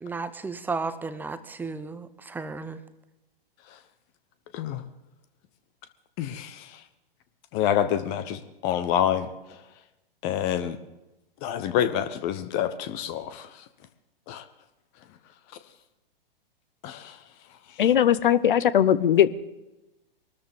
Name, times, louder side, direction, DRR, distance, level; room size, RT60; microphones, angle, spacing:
voice 1, 0.0-2.8, right 4 dB, 5° right, 12 dB, 0.7 m, -33 dB
voice 2, 6.2-6.7 7.5-9.3 10.2-10.8 11.4-13.5 14.3-14.4 16.8-17.1, left 10 dB, 30° left, 11 dB, 1.1 m, -27 dB
voice 3, 17.8-19.3, left 10 dB, 60° left, 16 dB, 0.9 m, -19 dB
23.5 x 13.5 x 3.7 m, 0.98 s
figure-of-eight pair, 110°, 29 cm